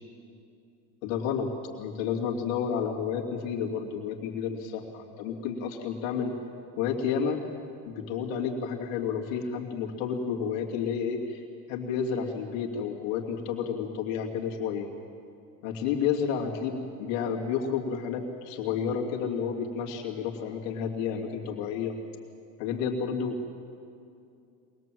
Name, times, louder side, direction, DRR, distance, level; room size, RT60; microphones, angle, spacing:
voice 1, 1.0-6.3 6.8-7.4 7.8-11.4 11.7-14.9 15.6-22.0 22.6-23.6, left 7 dB, 85° left, 0 dB, 2.7 m, -31 dB
24.0 x 20.0 x 7.7 m, 2.5 s
cardioid pair, 140°, 39 cm